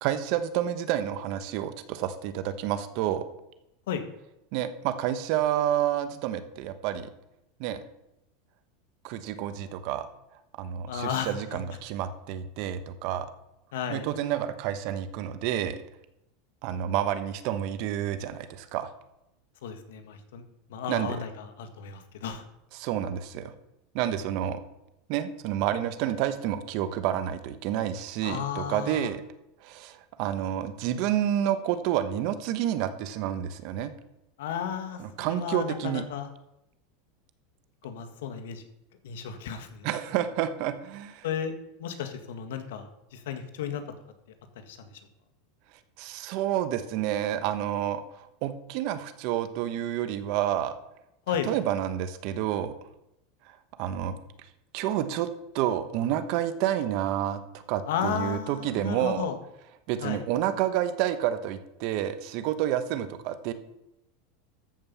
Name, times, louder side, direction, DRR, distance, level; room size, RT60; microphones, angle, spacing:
voice 1, 0.0-3.2 4.5-7.1 7.6-7.8 9.0-10.1 10.6-13.3 13.9-15.8 16.6-18.9 20.9-21.2 22.7-23.5 23.9-24.6 25.1-29.2 29.6-33.9 35.0-36.0 39.8-41.2 46.0-50.7 51.5-52.7 53.8-54.2 54.7-55.3 55.5-59.3 59.9-63.5, right 11 dB, 55° right, 11 dB, 1.1 m, -29 dB
voice 2, 10.9-11.6 13.7-14.1 19.6-20.4 20.7-22.4 28.2-29.1 34.4-36.3 37.8-38.6 39.0-39.9 41.2-41.5 41.8-43.8 44.7-44.9 51.3-51.5 57.9-59.4 60.0-60.2, left 8 dB, 80° left, 6 dB, 1.7 m, -33 dB
13.5 x 5.4 x 7.1 m, 0.86 s
supercardioid pair, 135°, 0 cm